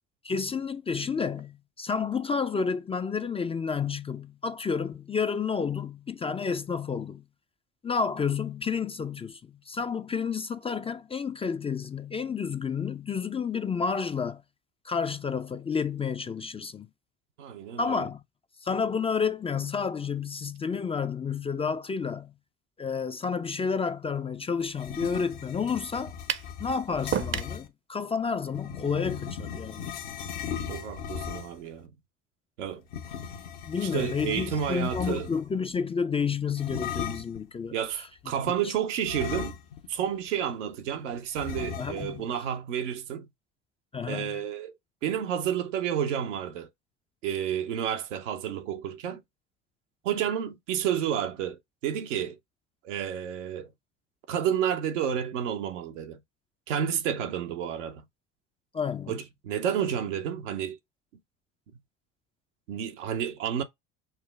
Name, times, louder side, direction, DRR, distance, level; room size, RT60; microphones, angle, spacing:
voice 1, 0.2-7.2 7.8-14.4 14.8-16.9 17.8-18.2 18.6-22.3 22.8-26.1 26.6-30.0 33.7-38.1 41.8-42.3 43.9-44.4 58.7-59.2, left 5 dB, 15° left, 0.3 m, -30 dB
voice 2, 17.4-18.1 30.7-31.9 32.6-32.8 33.7-35.3 37.7-39.6 39.9-43.3 44.0-44.7 45.0-46.7 47.2-49.2 50.0-52.4 52.8-53.7 54.3-56.2 56.7-58.0 59.1-60.8 62.7-63.6, right 9 dB, 85° right, 0.7 m, -30 dB
sound 1, 24.7-27.7 28.5-31.7 32.9-35.5 36.6-37.4 39.1-40.0 40.3-40.4 41.4-42.2, left 7 dB, 75° left, 1.0 m, -37 dB
sound 2, 26.3-26.5 27.1-27.6, right 9 dB, 35° right, 0.5 m, -29 dB
5.7 x 2.0 x 3.2 m
hypercardioid pair, 65°, 36 cm